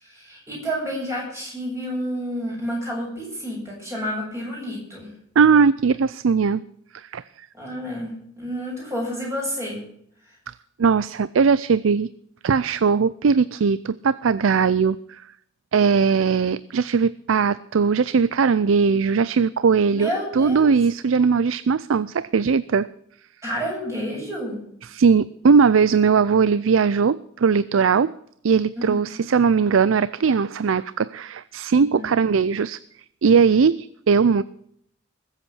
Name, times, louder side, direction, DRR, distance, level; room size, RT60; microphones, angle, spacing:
voice 1, 0.0-5.1 7.5-9.8 19.9-20.7 23.4-24.6 28.7-29.0 31.8-32.1, equal, 15° right, -3 dB, 7.9 m, -30 dB
voice 2, 5.4-6.6 6.9-7.2 10.8-12.1 12.4-15.2 15.7-22.9 24.8-28.1 28.4-32.8 33.2-34.4, right 5 dB, 90° right, 17 dB, 0.5 m, -19 dB
20.5 x 8.2 x 6.2 m, 0.68 s
head